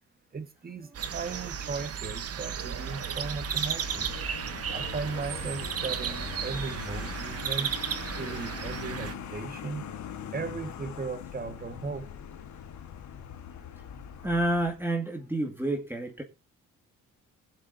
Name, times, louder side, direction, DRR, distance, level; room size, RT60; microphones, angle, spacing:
voice 1, 0.3-4.1 4.7-7.7 8.2-9.9 10.3-12.1, right 4 dB, 30° right, 1.6 m, -37 dB
sound 1, 0.9-9.1, right 8 dB, 50° right, 1.1 m, -34 dB
Vehicle, 2.7-14.9, left 8 dB, 70° left, 1.5 m, -42 dB
voice 2, 14.2-16.2, right 1 dB, 5° right, 2.1 m, -29 dB
21.0 x 7.4 x 2.7 m
cardioid pair, 90°, 30 cm